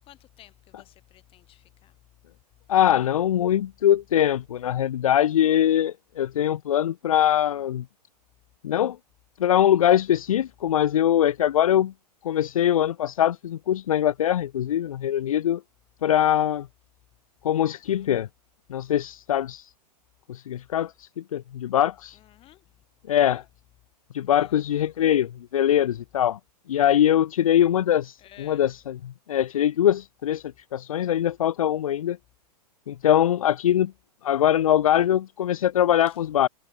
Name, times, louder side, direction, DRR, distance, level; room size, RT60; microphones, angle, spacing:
voice 1, 0.0-2.0 17.8-18.2 22.1-22.8 23.0-23.4 24.4-24.9 28.2-28.7 36.1-36.2, left 14 dB, 25° left, 6.8 m, -53 dB
voice 2, 2.7-7.8 8.6-9.0 9.4-11.9 12.2-15.6 16.0-16.7 17.4-18.3 18.7-19.7 20.3-22.2 23.1-23.4 24.1-26.4 26.7-30.4 30.7-32.2 32.9-33.9 34.2-36.5, left 11 dB, 55° left, 1.1 m, -22 dB
figure-of-eight pair, 105°, 21 cm